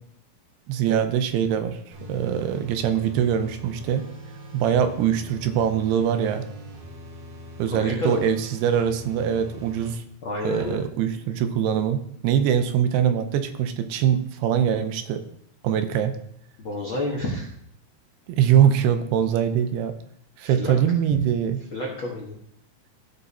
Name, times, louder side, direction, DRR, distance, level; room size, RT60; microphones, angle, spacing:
voice 1, 0.7-1.8 2.1-4.0 4.5-6.5 7.6-10.0 10.4-12.0 12.2-15.2 15.6-16.1 18.3-19.9 20.4-21.6, right 9 dB, 80° right, 8 dB, 2.7 m, -23 dB
sound 1, 1.9-9.9, equal, 60° right, 3.3 m, -42 dB
voice 2, 7.7-8.2 10.2-10.8 16.6-17.5 20.4-20.7 21.7-22.4, left 1 dB, 75° left, -3 dB, 1.1 m, -29 dB
15.5 x 5.2 x 4.1 m, 0.69 s
omnidirectional pair, 4.8 m